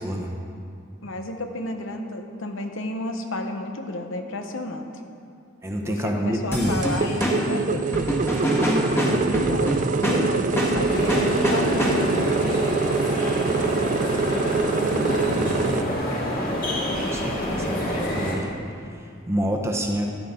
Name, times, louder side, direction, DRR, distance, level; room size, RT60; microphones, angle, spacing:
voice 1, 0.0-0.3 5.6-6.8 9.1-9.2 17.0-18.5 19.3-20.1, equal, 15° right, 1 dB, 0.9 m, -27 dB
voice 2, 1.0-4.9 5.8-7.9 8.9-12.8 14.4-15.6, left 1 dB, 80° left, 5 dB, 1.0 m, -32 dB
sound 1, 6.5-12.3, equal, 15° left, 1.4 m, -25 dB
sound 2, 6.7-15.8, right 5 dB, 40° right, 0.3 m, -25 dB
sound 3, 10.9-18.4, equal, 45° left, 2.0 m, -27 dB
13.0 x 10.0 x 3.7 m, 2.4 s
head